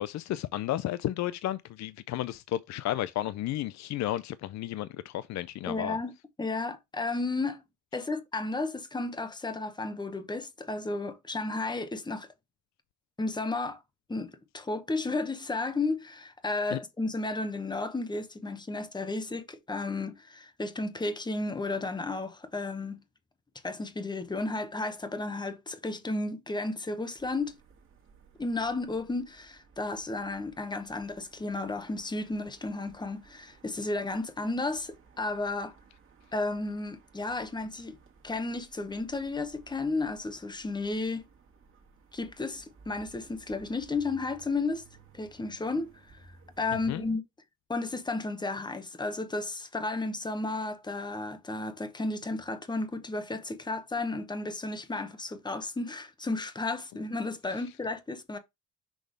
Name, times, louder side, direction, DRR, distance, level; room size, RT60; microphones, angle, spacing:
voice 1, 0.0-6.0 16.7-16.8 46.9-47.0, left 13 dB, 65° left, 0.4 m, -33 dB
voice 2, 5.7-6.1 6.4-7.7 7.9-12.3 13.2-13.8 14.1-23.0 23.6-27.6 28.4-35.7 36.3-38.0 38.2-41.2 42.1-44.9 45.1-46.3 46.6-47.2 47.7-58.4, left 3 dB, 15° left, 1.0 m, -33 dB
sound 1, 27.2-47.1, right 4 dB, 45° right, 1.8 m, -58 dB
6.2 x 3.3 x 5.1 m
cardioid pair, 90°, 30 cm